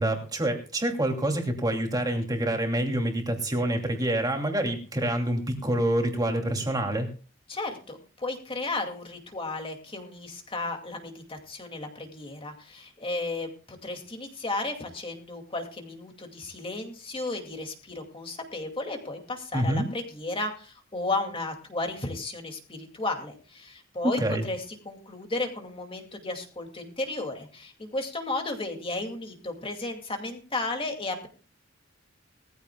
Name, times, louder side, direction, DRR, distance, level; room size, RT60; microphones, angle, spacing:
voice 1, 0.0-7.1 19.5-19.9 24.0-24.5, right 1 dB, 20° right, 3 dB, 2.6 m, -27 dB
voice 2, 7.5-31.3, left 2 dB, 25° left, 4 dB, 2.3 m, -34 dB
20.5 x 14.5 x 2.3 m, 0.36 s
head